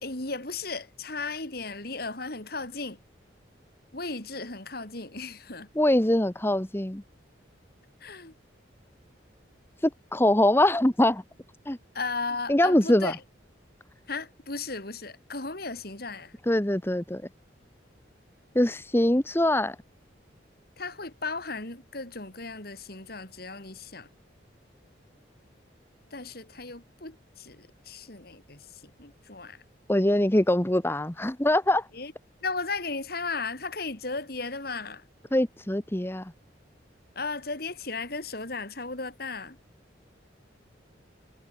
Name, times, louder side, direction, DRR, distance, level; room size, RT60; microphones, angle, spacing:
voice 1, 0.0-3.0 3.9-5.7 8.0-8.3 11.9-13.2 14.1-16.3 20.8-24.1 26.1-28.6 29.0-29.6 32.0-32.1 32.4-35.0 37.1-39.6, left 3 dB, 55° left, 3.3 m, -35 dB
voice 2, 5.7-7.0 9.8-11.2 11.7-11.8 12.5-13.1 16.4-17.2 18.5-19.8 29.9-31.9 35.3-36.3, left 1 dB, 10° left, 1.0 m, -23 dB
head